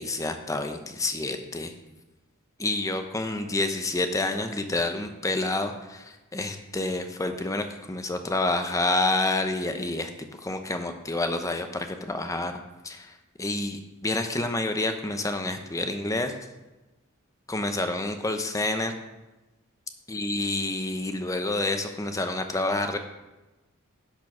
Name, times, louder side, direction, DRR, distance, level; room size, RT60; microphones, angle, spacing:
voice 1, 0.0-1.7 2.6-12.5 12.8-16.3 17.5-18.9 20.1-23.0, left 2 dB, 15° left, 7 dB, 0.7 m, -28 dB
10.5 x 4.6 x 6.1 m, 1.1 s
head